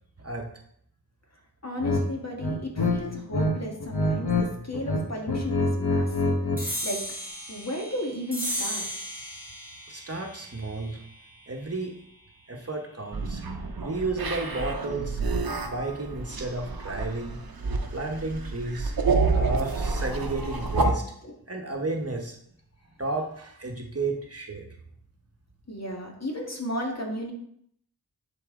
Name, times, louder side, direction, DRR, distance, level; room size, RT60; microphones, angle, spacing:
voice 1, 0.2-0.5 9.9-11.0 11.5-11.9 12.5-13.4 13.8-15.2 15.6-17.4 17.9-18.9 19.3-21.0 21.5-22.3 23.0-24.7, right 2 dB, 35° right, 2 dB, 1.1 m, -32 dB
voice 2, 1.6-6.4 6.8-7.1 7.5-8.8 21.2-21.3 25.7-27.3, left 1 dB, 40° left, 0 dB, 1.7 m, -34 dB
sound 1, 1.8-2.0 2.4-3.5 3.8-4.5 4.7-6.6, left 2 dB, 75° left, 1.3 m, -25 dB
sound 2, 6.6-13.4, equal, 5° right, 2.7 m, -37 dB
sound 3, 13.1-20.9, right 3 dB, 60° right, 0.8 m, -28 dB
10.5 x 4.3 x 3.7 m, 0.69 s
wide cardioid pair, 60°, 39 cm